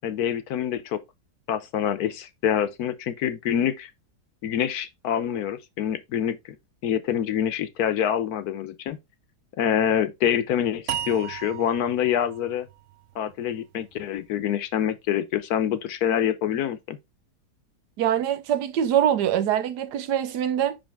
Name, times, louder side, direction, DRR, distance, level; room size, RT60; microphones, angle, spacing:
voice 1, 0.0-1.0 1.5-3.9 4.4-6.6 6.8-9.0 9.6-12.7 13.1-17.0, left 9 dB, 70° left, 1.2 m, -26 dB
sound 1, 10.9-14.1, right 10 dB, 65° right, 0.8 m, -36 dB
voice 2, 18.0-20.8, right 10 dB, 85° right, 1.3 m, -23 dB
5.5 x 5.1 x 3.4 m
omnidirectional pair, 1.7 m